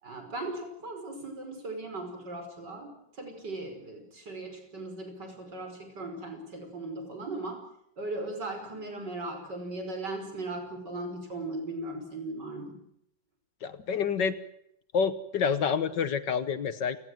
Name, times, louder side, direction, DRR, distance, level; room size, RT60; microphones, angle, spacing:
voice 1, 0.0-7.6 8.0-12.8, right 2 dB, 60° right, 5 dB, 5.9 m, -38 dB
voice 2, 13.6-14.4 14.9-17.0, left 6 dB, 65° left, 13 dB, 1.8 m, -28 dB
29.0 x 19.0 x 7.7 m, 0.73 s
omnidirectional pair, 2.1 m